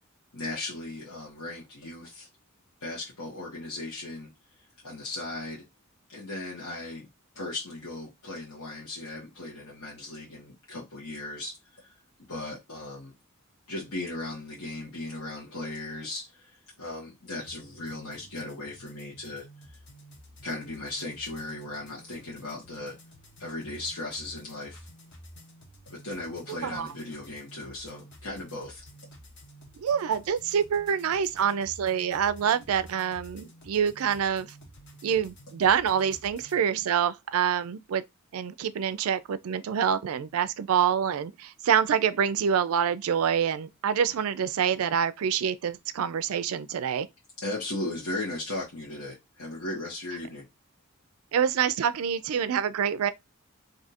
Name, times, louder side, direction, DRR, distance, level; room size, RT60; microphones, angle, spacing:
voice 1, 0.3-2.3 2.8-4.3 4.8-5.6 6.1-7.0 7.3-11.9 12.3-13.1 13.7-19.4 20.4-23.0 23.4-24.9 25.9-28.8 47.4-50.5, left 2 dB, 75° left, 1.2 m, -37 dB
sound 1, 17.4-36.6, equal, 50° left, 0.9 m, -51 dB
voice 2, 29.8-34.5 35.0-38.0 38.3-47.1 51.3-53.1, right 8 dB, 75° right, 0.4 m, -26 dB
2.7 x 2.4 x 4.1 m
head